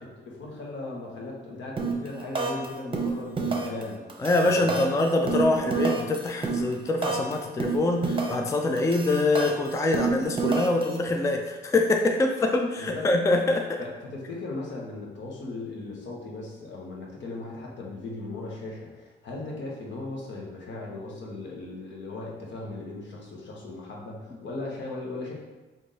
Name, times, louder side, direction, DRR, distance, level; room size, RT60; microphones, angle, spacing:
voice 1, 0.0-4.0 4.4-4.8 12.8-13.1 13.8-25.3, left 2 dB, 70° left, -3 dB, 1.1 m, -37 dB
sound 1, 1.8-2.1 2.4-2.7 2.9-3.8 4.1-7.3 7.6-8.5 8.8-11.0, right 4 dB, 25° right, 0.8 m, -28 dB
voice 2, 4.2-13.8, left 2 dB, 15° left, 3 dB, 0.3 m, -24 dB
3.6 x 2.6 x 4.0 m, 1.2 s
cardioid pair, 90°, 20 cm